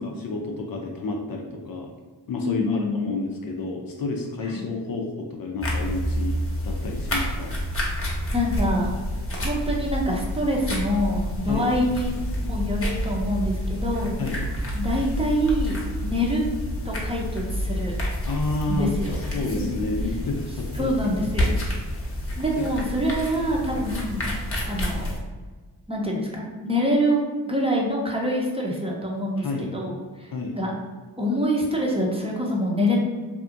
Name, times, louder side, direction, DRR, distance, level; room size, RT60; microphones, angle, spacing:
voice 1, 0.0-1.9 2.3-6.4 6.6-7.5 11.5-11.7 14.2-14.5 18.3-18.9 19.3-21.1 21.4-21.5 21.9-22.1 22.6-22.7 29.4-29.8 30.3-30.6, left 3 dB, 50° left, 1 dB, 0.5 m, -30 dB
voice 2, 2.4-3.2 4.4-4.5 8.3-8.9 9.4-14.2 14.7-16.4 16.8-18.0 18.7-19.7 20.7-21.5 22.4-25.2 25.9-30.7 31.2-33.0, equal, 15° right, -2 dB, 0.7 m, -26 dB
sound 1, 5.6-25.2, equal, 30° left, 0.9 m, -29 dB
2.7 x 2.4 x 2.6 m, 1.4 s
supercardioid pair, 45°, 45 cm